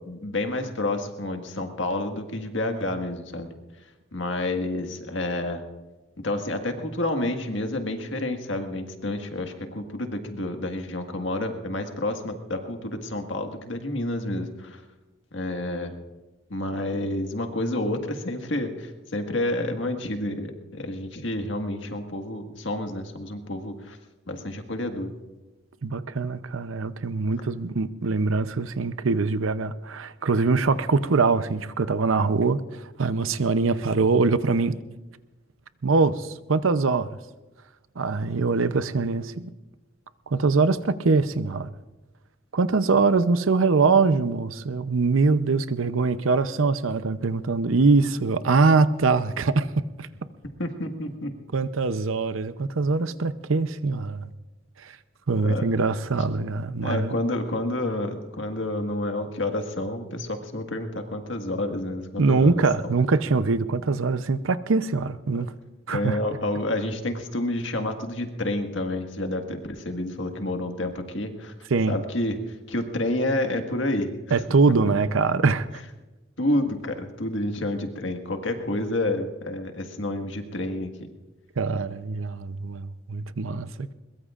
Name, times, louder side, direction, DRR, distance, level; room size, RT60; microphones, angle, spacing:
voice 1, 0.1-3.5 4.1-5.6 6.2-14.8 15.3-16.0 16.5-24.0 24.3-25.1 50.6-51.3 53.1-53.2 55.4-55.8 56.8-62.6 65.3-65.5 65.9-71.5 71.9-74.4 76.4-80.9, left 1 dB, 65° left, 1.8 m, -29 dB
voice 2, 25.8-34.7 35.8-37.1 38.0-39.5 40.3-41.7 42.5-50.1 51.5-54.3 54.8-54.9 55.3-57.2 62.2-65.5 65.9-66.2 71.7-71.9 74.3-75.8 81.6-83.9, right 4 dB, 85° right, 0.7 m, -23 dB
22.0 x 21.5 x 2.5 m
head